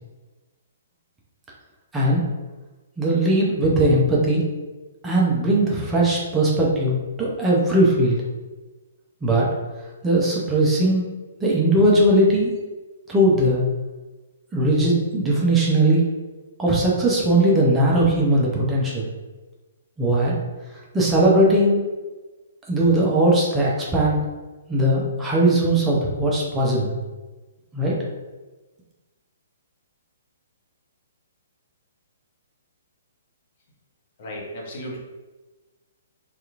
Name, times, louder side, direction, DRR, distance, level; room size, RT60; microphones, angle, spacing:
voice 1, 1.9-2.3 3.0-4.5 5.0-8.2 9.2-9.5 10.0-11.0 11.4-12.5 13.1-13.6 14.5-16.1 16.6-19.1 20.0-20.4 20.9-21.8 22.7-24.2 24.7-26.9 27.7-28.0, right 1 dB, 15° right, -4 dB, 0.6 m, -19 dB
voice 2, 34.2-35.0, equal, 45° left, -2 dB, 0.8 m, -34 dB
2.8 x 2.4 x 2.4 m, 1.2 s
figure-of-eight pair, 125°, 0 cm